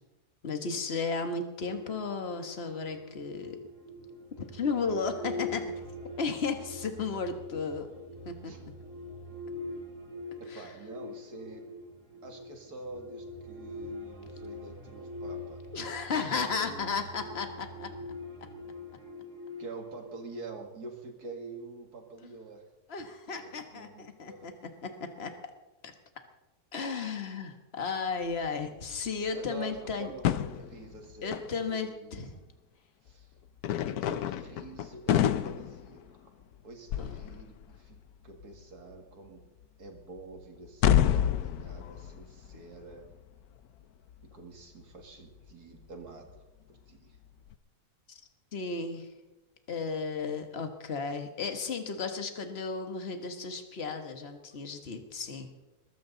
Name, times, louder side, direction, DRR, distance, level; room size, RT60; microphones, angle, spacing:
voice 1, 0.4-3.6 4.4-5.8 6.2-7.9 8.3-8.5 10.5-10.7 15.7-17.9 22.9-24.5 24.8-25.3 25.8-25.9 26.7-30.1 31.2-32.4 37.0-37.1 48.1-48.2 48.5-49.1 49.7-55.6, left 5 dB, 40° left, 6 dB, 1.7 m, -34 dB
sound 1, 1.6-20.5, left 2 dB, 35° right, 2.8 m, -43 dB
voice 2, 10.5-11.6 12.2-15.6 16.1-17.0 19.6-22.6 23.3-24.5 29.3-32.5 33.0-33.3 33.8-36.3 36.6-38.0 38.2-39.4 39.8-43.1 44.3-46.4 46.7-47.2, right 3 dB, 80° right, 3 dB, 2.8 m, -46 dB
sound 2, 28.8-29.3 29.7-31.5 33.1-33.2 33.6-36.5 36.9-38.0 38.3-38.6 39.8-40.2 40.6-43.6 44.1-44.3 44.9-45.0 45.5-45.6 45.8-45.9 46.3-46.4 47.5-47.6, left 10 dB, 75° left, 1.2 m, -29 dB
21.0 x 15.0 x 4.0 m, 1.0 s
omnidirectional pair, 1.6 m